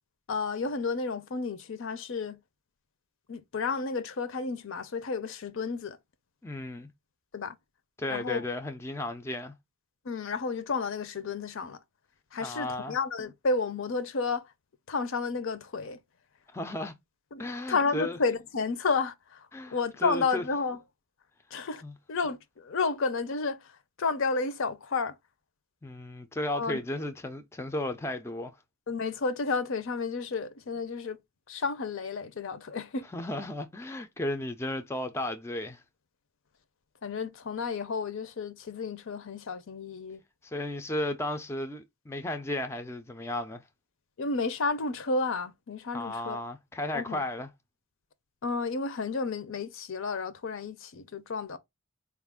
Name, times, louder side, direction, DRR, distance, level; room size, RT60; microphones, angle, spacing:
voice 1, 0.3-2.4 3.3-6.0 7.3-7.6 8.1-8.5 10.0-11.8 12.3-14.5 14.9-16.0 17.3-20.8 21.5-21.8 22.1-23.7 24.0-25.2 26.6-26.8 28.9-31.2 31.5-33.1 37.0-40.2 44.2-46.4 46.9-47.2 48.4-51.6, left 4 dB, 65° left, 0.5 m, -31 dB
voice 2, 6.4-6.9 8.0-9.5 12.4-13.0 16.5-16.9 17.4-18.2 19.5-20.4 21.8-21.9 25.8-28.6 33.1-35.8 40.4-43.6 45.9-47.5, left 1 dB, 10° left, 0.4 m, -34 dB
4.3 x 2.4 x 3.5 m
head